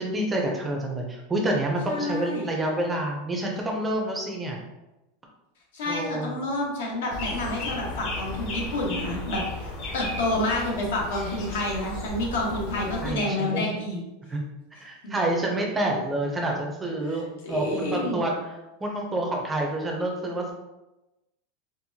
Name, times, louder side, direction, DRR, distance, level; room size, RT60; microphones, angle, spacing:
voice 1, 0.0-4.6 5.9-6.4 13.0-13.7 14.3-14.4 14.8-18.5 18.8-20.5, right 1 dB, 10° right, 0 dB, 0.4 m, -28 dB
voice 2, 1.9-2.5 5.7-14.0 15.0-15.2 17.4-18.2, left 1 dB, 80° left, -2 dB, 1.1 m, -29 dB
sound 1, 7.1-13.1, left 2 dB, 45° left, 0.7 m, -34 dB
4.3 x 2.0 x 2.7 m, 0.99 s
supercardioid pair, 165°, 0 cm